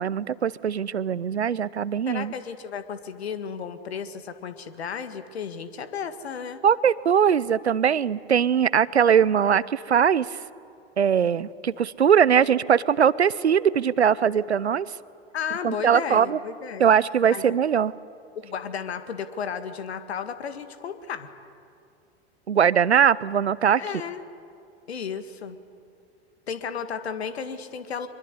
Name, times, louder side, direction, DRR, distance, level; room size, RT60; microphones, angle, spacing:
voice 1, 0.0-2.3 6.6-10.4 11.0-14.9 15.6-16.4 16.8-17.9 22.5-23.8, right 8 dB, 85° right, 20 dB, 0.7 m, -21 dB
voice 2, 2.1-6.6 15.3-16.9 17.3-17.6 18.4-21.3 23.8-24.2 24.9-25.6 26.5-28.1, left 6 dB, 75° left, 11 dB, 1.8 m, -33 dB
24.0 x 22.0 x 9.6 m, 2.5 s
figure-of-eight pair, 90°, 32 cm